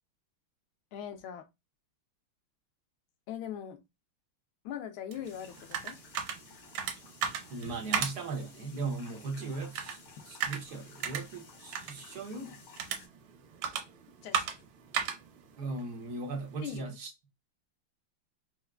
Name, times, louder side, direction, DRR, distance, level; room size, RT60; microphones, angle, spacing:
voice 1, 0.9-1.4 3.3-3.8 4.6-6.0 14.2-14.6 16.6-16.9, left 9 dB, 85° left, 1.6 m, -41 dB
sound 1, 5.1-16.8, right 8 dB, 85° right, 1.6 m, -38 dB
sound 2, 5.2-13.1, left 5 dB, 65° left, 1.4 m, -55 dB
voice 2, 7.5-10.0 10.3-12.6 15.6-17.1, right 3 dB, 60° right, 1.1 m, -38 dB
4.6 x 2.3 x 2.2 m
omnidirectional pair, 2.3 m